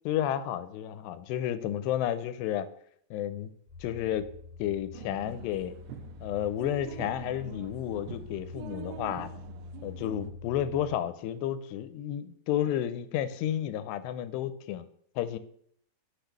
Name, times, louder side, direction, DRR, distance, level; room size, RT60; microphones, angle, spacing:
voice 1, 0.1-2.7 3.1-3.5 3.8-4.3 4.6-5.8 6.2-9.3 9.8-14.9 15.2-15.4, left 11 dB, 80° left, 12 dB, 2.8 m, -31 dB
sound 1, 3.7-11.0, left 3 dB, 5° right, 3.3 m, -46 dB
sound 2, 4.9-10.3, right 9 dB, 85° right, 2.8 m, -45 dB
10.5 x 6.4 x 6.6 m, 0.66 s
omnidirectional pair, 4.9 m